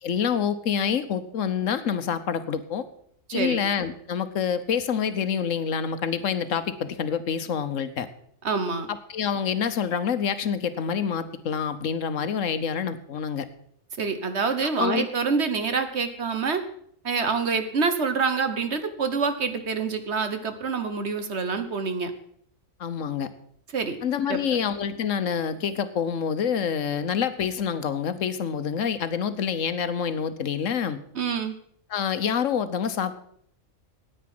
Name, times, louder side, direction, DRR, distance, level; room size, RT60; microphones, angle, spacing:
voice 1, 0.0-2.9 3.3-8.1 8.9-13.5 14.8-15.0 22.8-23.3 24.0-31.0 31.9-33.2, left 7 dB, 70° left, 12 dB, 1.3 m, -27 dB
voice 2, 3.3-3.6 8.4-8.9 14.0-16.6 17.0-22.1 23.7-24.0 24.3-24.6 31.1-31.5, right 5 dB, 55° right, 9 dB, 1.4 m, -26 dB
9.8 x 9.4 x 7.7 m, 0.65 s
omnidirectional pair, 1.4 m